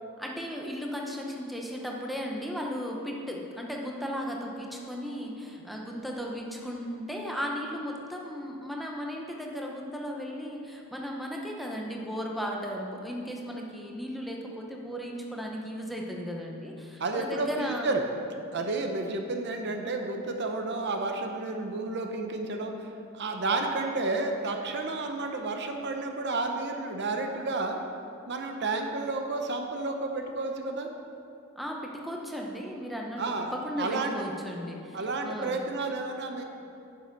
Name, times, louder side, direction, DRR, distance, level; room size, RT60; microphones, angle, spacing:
voice 1, 0.2-17.9 31.6-35.6, equal, ahead, -1 dB, 0.8 m, -36 dB
voice 2, 17.0-18.0 18.5-22.7 23.1-27.8 28.3-30.9 33.2-33.5 33.8-34.1 34.9-36.4, right 3 dB, 50° right, 4 dB, 0.7 m, -31 dB
9.7 x 6.7 x 5.2 m, 2.7 s
head